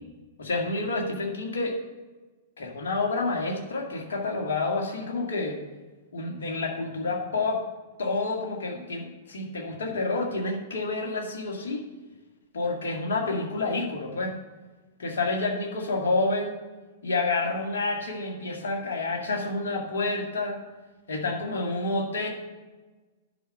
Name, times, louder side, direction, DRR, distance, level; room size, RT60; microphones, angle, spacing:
voice 1, 0.4-1.8 2.6-5.6 6.1-7.6 8.0-11.8 12.5-14.4 15.0-16.5 17.0-20.6 21.1-22.3, left 3 dB, 65° left, 1 dB, 2.0 m, -29 dB
9.8 x 5.6 x 7.5 m, 1.2 s
figure-of-eight pair, 105°, 0 cm